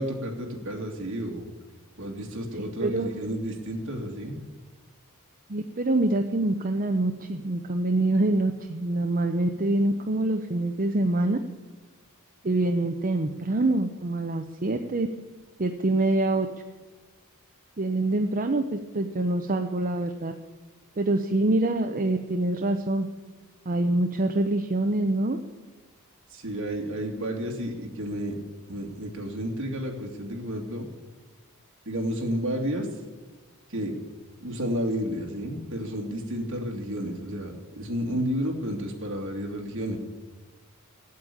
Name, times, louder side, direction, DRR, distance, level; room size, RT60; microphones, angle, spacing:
voice 1, 0.0-1.5 2.0-4.4 26.3-28.3 28.7-30.9 31.9-32.9 33.7-33.9 34.4-40.0, equal, 60° right, 0 dB, 2.7 m, -31 dB
voice 2, 2.5-3.1 5.5-11.4 12.4-15.1 15.6-16.5 17.8-20.3 21.0-23.1 23.7-25.4, right 2 dB, 40° right, 5 dB, 0.7 m, -25 dB
16.0 x 8.6 x 8.7 m, 1.2 s
head